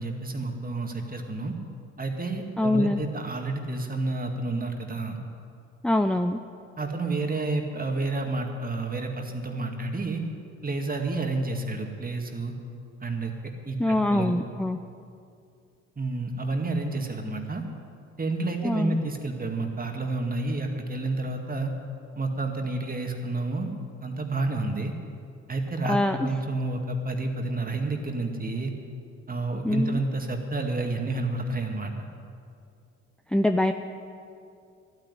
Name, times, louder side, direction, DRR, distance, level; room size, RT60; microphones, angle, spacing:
voice 1, 0.0-1.6 2.0-5.2 6.8-10.2 10.6-12.5 13.0-14.4 16.0-17.6 18.2-21.7 22.1-23.7 24.0-24.9 25.5-28.7 29.3-32.1, right 2 dB, 30° right, 3 dB, 2.3 m, -30 dB
voice 2, 2.6-3.0 5.8-6.4 13.8-14.8 18.6-19.0 25.8-26.3 29.6-30.0 33.3-33.7, left 1 dB, 5° left, 7 dB, 0.6 m, -24 dB
12.0 x 9.5 x 10.0 m, 2.4 s
supercardioid pair, 65°, 29 cm